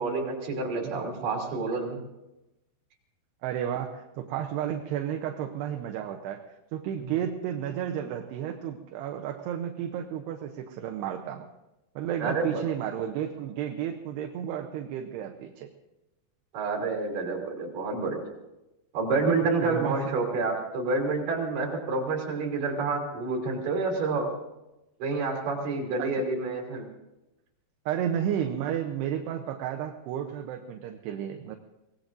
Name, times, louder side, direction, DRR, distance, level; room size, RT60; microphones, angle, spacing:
voice 1, 0.0-2.0 12.2-12.6 16.5-18.2 18.9-24.3 25.0-26.9, right 3 dB, 55° right, 0 dB, 4.6 m, -28 dB
voice 2, 3.4-6.5 6.7-11.5 12.0-15.7 19.6-20.1 26.0-26.2 27.9-31.6, right 10 dB, 80° right, 3 dB, 2.8 m, -32 dB
24.0 x 19.0 x 2.6 m, 0.97 s
omnidirectional pair, 4.8 m